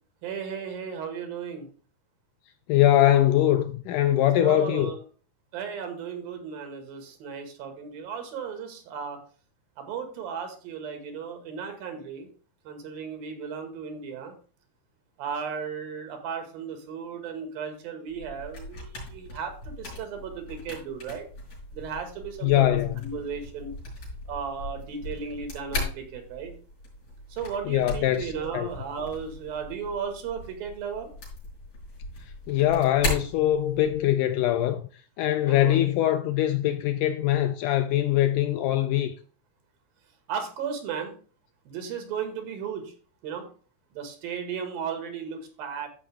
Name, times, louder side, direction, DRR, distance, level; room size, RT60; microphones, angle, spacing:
voice 1, 0.2-1.7 4.4-5.0 5.5-9.2 9.8-12.3 12.7-14.4 15.2-21.3 21.7-22.7 23.0-23.7 24.3-26.5 27.3-31.1 35.4-35.8 40.3-41.1 41.7-42.9 43.2-43.5 43.9-45.9, right 6 dB, 75° right, 3.6 m, -35 dB
voice 2, 2.7-4.9 22.4-23.1 27.7-28.7 32.5-34.8 35.2-39.1, left 13 dB, 80° left, 1.9 m, -22 dB
sound 1, 18.1-34.1, left 2 dB, 50° left, 6.0 m, -38 dB
13.5 x 5.4 x 3.4 m
omnidirectional pair, 4.2 m